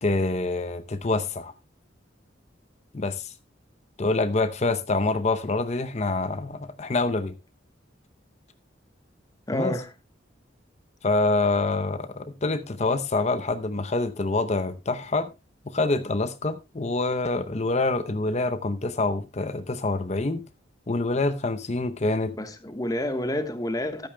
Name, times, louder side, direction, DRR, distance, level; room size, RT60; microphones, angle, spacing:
voice 1, 0.0-1.5 2.9-3.3 4.0-7.3 9.5-9.8 11.0-15.3 15.7-20.4 20.9-22.3, left 2 dB, 35° left, 0.7 m, -26 dB
voice 2, 9.5-9.9 22.4-24.1, left 1 dB, 20° left, 1.2 m, -29 dB
14.0 x 12.0 x 2.2 m
head